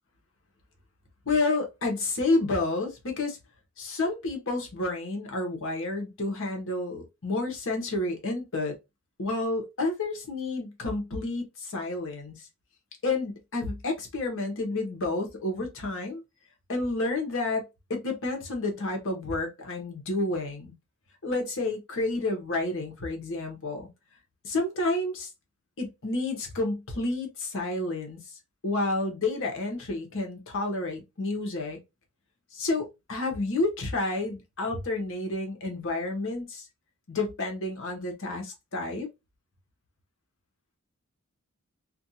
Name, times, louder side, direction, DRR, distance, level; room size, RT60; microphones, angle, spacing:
voice 1, 1.3-3.4 3.8-8.7 9.2-12.5 13.0-16.2 16.7-17.6 17.9-20.7 21.2-23.9 24.4-25.3 25.8-28.2 28.6-31.8 32.5-36.7 37.1-39.1, left 2 dB, 60° left, 0.9 m, -30 dB
2.5 x 2.3 x 2.7 m
head